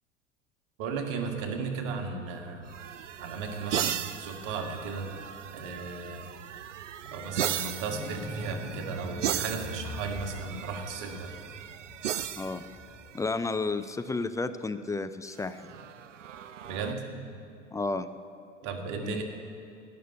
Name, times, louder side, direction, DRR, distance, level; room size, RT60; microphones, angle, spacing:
voice 1, 0.8-2.7 3.2-5.1 5.5-6.3 7.0-11.3 16.7-17.0 18.6-19.2, right 4 dB, 55° right, 4 dB, 1.9 m, -35 dB
sound 1, 2.6-13.8 15.4-16.9, right 9 dB, 85° right, 0.5 m, -37 dB
sound 2, 7.8-13.3 16.3-16.4, left 1 dB, 10° right, 4.4 m, -42 dB
voice 2, 13.1-15.7 17.7-18.1 19.0-19.2, left 3 dB, 10° left, 10 dB, 0.4 m, -32 dB
16.5 x 6.8 x 8.9 m, 2.5 s
figure-of-eight pair, 75°, 36 cm